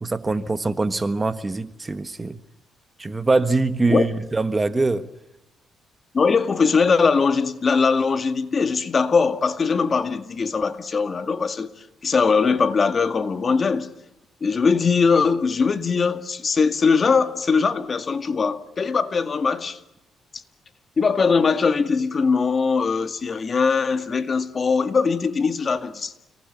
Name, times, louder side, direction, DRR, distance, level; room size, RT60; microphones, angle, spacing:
voice 1, 0.0-2.4 3.0-5.1, right 3 dB, 25° right, 1.3 m, -23 dB
voice 2, 6.1-13.9 14.4-19.8 21.0-26.2, left 5 dB, 40° left, 2.0 m, -21 dB
30.0 x 19.5 x 8.1 m
cardioid pair, 90°, 0 cm